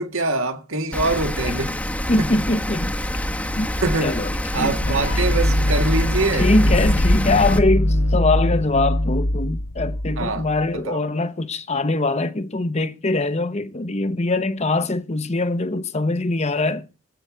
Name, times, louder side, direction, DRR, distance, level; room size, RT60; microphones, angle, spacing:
voice 1, 0.0-1.8 2.2-2.4 3.8-4.2 4.5-6.7 10.2-10.5 10.7-11.0, right 3 dB, 65° right, 1.8 m, -24 dB
Rain, 0.9-7.6, left 1 dB, 5° left, 1.1 m, -26 dB
voice 2, 2.1-2.9 3.6-3.7 4.0-5.2 6.3-16.9, left 2 dB, 30° left, 0.9 m, -22 dB
sound 1, 4.8-10.7, left 1 dB, 85° left, 4.2 m, -22 dB
sound 2, 6.6-8.9, left 1 dB, 45° left, 1.3 m, -27 dB
20.5 x 8.8 x 5.0 m
head